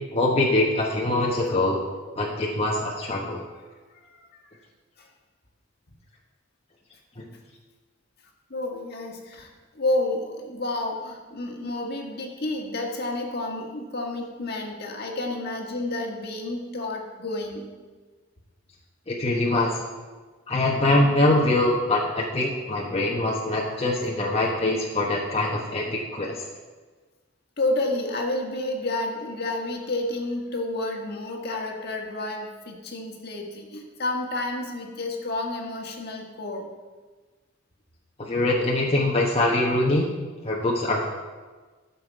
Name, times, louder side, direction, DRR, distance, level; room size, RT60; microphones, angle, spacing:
voice 1, 0.1-1.8 2.2-3.5 7.2-7.3 19.1-19.8 20.5-26.4 38.2-40.1 40.4-41.1, left 2 dB, 30° left, -3 dB, 1.1 m, -23 dB
voice 2, 8.5-9.5 9.7-17.6 27.6-36.7, left 2 dB, 55° left, 1 dB, 1.6 m, -30 dB
12.0 x 7.1 x 4.6 m, 1.3 s
head